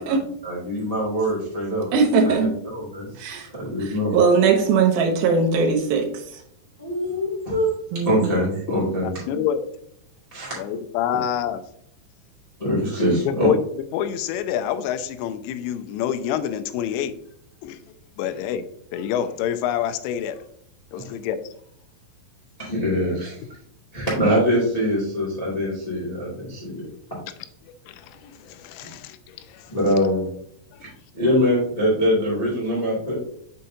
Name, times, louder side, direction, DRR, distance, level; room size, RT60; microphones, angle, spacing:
voice 1, 0.4-1.9 2.2-4.1 6.8-7.8 8.0-9.1 10.3-10.6 12.6-13.5 20.9-21.0 22.6-23.4 23.9-27.2 28.8-28.9 29.7-30.3 30.8-30.9 31.1-33.1, equal, 25° left, -6 dB, 0.9 m, -24 dB
voice 2, 1.9-2.5 3.2-3.5 3.8-6.4 7.9-8.3, right 5 dB, 85° right, 2 dB, 2.1 m, -20 dB
voice 3, 9.3-9.6 10.6-11.6 13.3-13.6 13.9-17.1 17.6-17.8 18.2-20.4 20.9-21.4 27.6-29.7 30.7-30.8 31.3-31.4, left 9 dB, 85° left, 9 dB, 2.8 m, -27 dB
6.5 x 5.6 x 2.7 m, 0.70 s
omnidirectional pair, 5.4 m